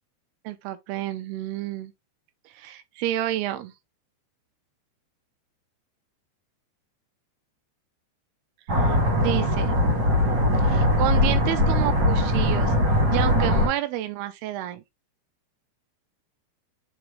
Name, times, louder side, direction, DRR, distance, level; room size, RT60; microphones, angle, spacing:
voice 1, 0.4-1.9 2.5-3.7 8.8-9.8 10.5-12.8 13.1-14.8, right 13 dB, 75° right, 2.5 m, -30 dB
sound 1, 8.7-13.7, left 1 dB, 35° right, 2.0 m, -21 dB
6.7 x 4.5 x 3.2 m
omnidirectional pair, 5.1 m